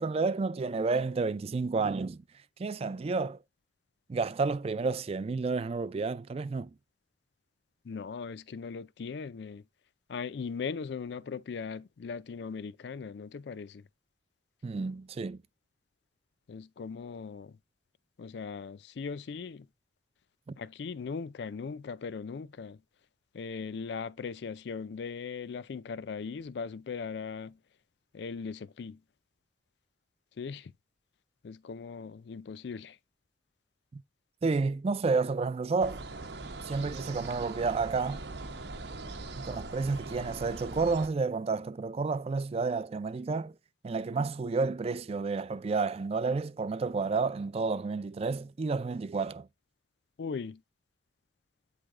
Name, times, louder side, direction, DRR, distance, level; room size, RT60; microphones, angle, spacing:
voice 1, 0.0-2.2 2.6-3.4 4.1-6.7 14.6-15.4 20.5-20.6 33.9-34.0 34.4-36.0 36.6-38.2 39.4-43.6 43.8-49.5, right 4 dB, 35° right, 0.3 m, -30 dB
voice 2, 7.8-9.6 10.1-13.8 16.5-17.6 18.2-19.7 20.6-22.8 23.3-27.6 28.1-29.0 30.4-30.7 31.4-33.0 50.2-50.6, left 5 dB, 65° left, 0.4 m, -39 dB
sound 1, 35.8-41.1, right 2 dB, 65° right, 0.8 m, -41 dB
8.6 x 3.3 x 3.6 m
head